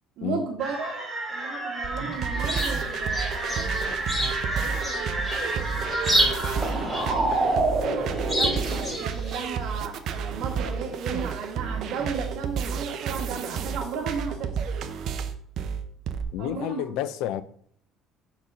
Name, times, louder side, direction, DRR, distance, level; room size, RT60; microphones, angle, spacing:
voice 1, 0.2-1.0 1.3-4.0 4.6-6.4 6.9-14.7 16.4-16.8, right 5 dB, 65° right, 1.9 m, -35 dB
sound 1, 0.6-8.9, right 2 dB, 10° right, 2.3 m, -29 dB
sound 2, 1.8-16.2, right 6 dB, 50° right, 0.6 m, -31 dB
Chirp tweet, 2.1-9.7, equal, 15° left, 2.7 m, -31 dB
voice 2, 16.3-17.4, left 12 dB, 75° left, 0.4 m, -30 dB
5.2 x 4.6 x 6.2 m
cardioid pair, 160°, 0 cm